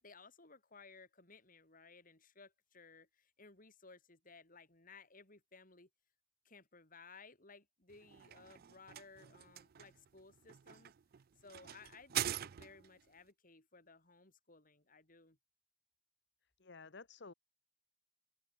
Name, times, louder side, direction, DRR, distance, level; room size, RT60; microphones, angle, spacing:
voice 1, 0.0-5.9 6.4-10.9 11.4-15.4, left 4 dB, 45° left, 5.8 m, -59 dB
sound 1, 7.9-13.0, right 12 dB, 55° right, 0.4 m, -44 dB
voice 2, 16.6-17.3, left 4 dB, 65° left, 1.3 m, -53 dB
open air
head